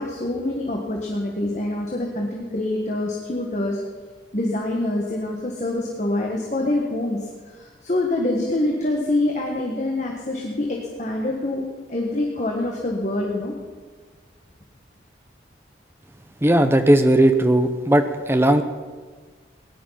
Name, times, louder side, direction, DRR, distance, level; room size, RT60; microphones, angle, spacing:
voice 1, 0.0-3.8 4.3-11.6 11.9-13.5, left 1 dB, 40° left, -1 dB, 1.6 m, -25 dB
voice 2, 16.4-18.6, right 1 dB, 15° right, 8 dB, 0.8 m, -17 dB
18.0 x 11.0 x 5.8 m, 1.4 s
head